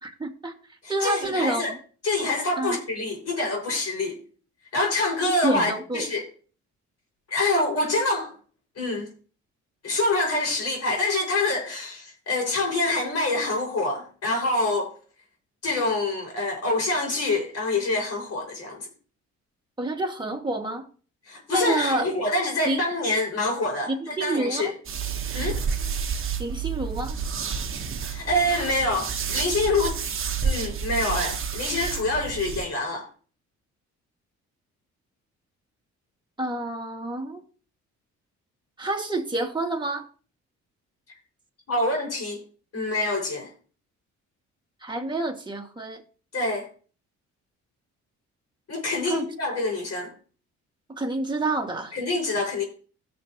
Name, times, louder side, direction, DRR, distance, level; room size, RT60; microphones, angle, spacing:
voice 1, 0.0-0.5 0.9-1.8 2.6-2.8 5.4-6.0 19.8-20.9 21.5-22.0 22.6-22.8 23.9-24.8 26.4-27.2 36.4-37.4 38.8-40.1 44.8-46.0 49.0-49.3 51.0-52.0, right 2 dB, 15° right, 2.1 m, -28 dB
voice 2, 0.8-1.7 2.0-4.2 4.7-6.2 7.3-8.3 8.8-9.1 9.8-14.9 15.6-18.9 21.3-24.7 25.3-25.6 28.1-30.0 30.4-33.1 41.7-42.4 42.7-43.5 46.3-46.7 48.7-50.1 51.9-52.6, left 2 dB, 55° left, 5.8 m, -26 dB
sound 1, 24.8-32.6, right 6 dB, 45° right, 1.3 m, -30 dB
17.5 x 6.8 x 3.0 m
cardioid pair, 90°, 30 cm